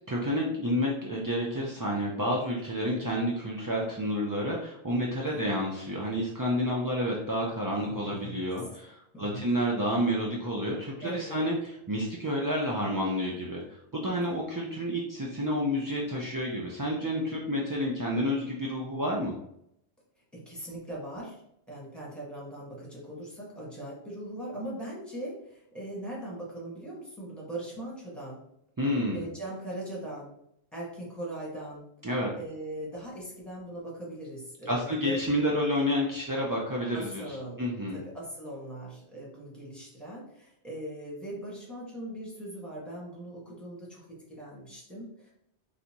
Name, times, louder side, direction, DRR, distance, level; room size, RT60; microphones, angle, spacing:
voice 1, 0.1-19.4 28.8-29.2 32.0-32.3 34.7-38.0, equal, 35° right, -3 dB, 0.3 m, -30 dB
voice 2, 7.7-8.4 9.1-9.5 11.0-11.5 20.3-21.4 21.7-28.4 29.1-30.3 30.7-31.9 32.3-35.2 36.9-45.3, right 1 dB, ahead, -6 dB, 1.4 m, -40 dB
4.0 x 3.4 x 2.9 m, 0.75 s
omnidirectional pair, 1.1 m